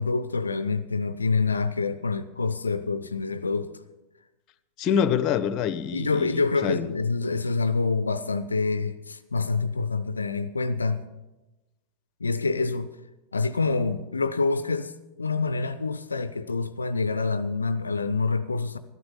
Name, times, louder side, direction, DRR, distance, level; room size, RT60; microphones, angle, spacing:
voice 1, 0.0-3.7 5.9-11.0 12.2-12.9 13.3-14.9 15.2-18.8, left 4 dB, 75° left, 0.4 m, -26 dB
voice 2, 4.8-6.9, left 8 dB, 35° left, 0.7 m, -26 dB
13.0 x 12.0 x 5.5 m
figure-of-eight pair, 90°, 0 cm